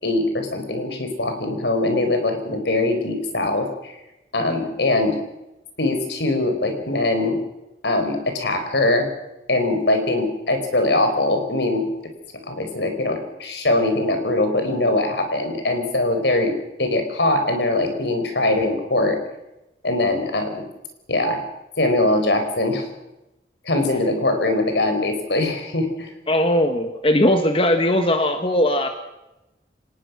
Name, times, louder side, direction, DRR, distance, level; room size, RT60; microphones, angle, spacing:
voice 1, 0.0-3.9 4.3-5.2 5.8-7.4 7.8-9.1 9.5-11.9 12.5-16.5 16.8-19.2 19.8-20.6 21.1-21.4 21.8-22.9 23.6-26.1, left 2 dB, 75° left, 6 dB, 4.6 m, -22 dB
voice 2, 26.3-28.9, left 1 dB, 30° left, 6 dB, 1.6 m, -19 dB
24.5 x 19.0 x 6.3 m, 0.94 s
head